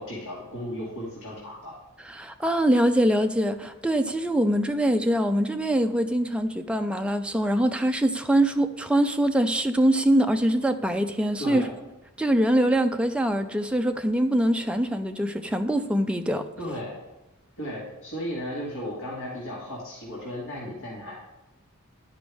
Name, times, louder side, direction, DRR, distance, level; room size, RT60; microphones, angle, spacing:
voice 1, 0.0-1.8 11.4-11.7 16.6-16.9 17.6-21.1, equal, 60° left, -6 dB, 1.9 m, -35 dB
voice 2, 2.2-11.6 12.2-16.4, right 1 dB, 5° right, 6 dB, 0.4 m, -23 dB
11.0 x 5.1 x 3.5 m, 0.98 s
head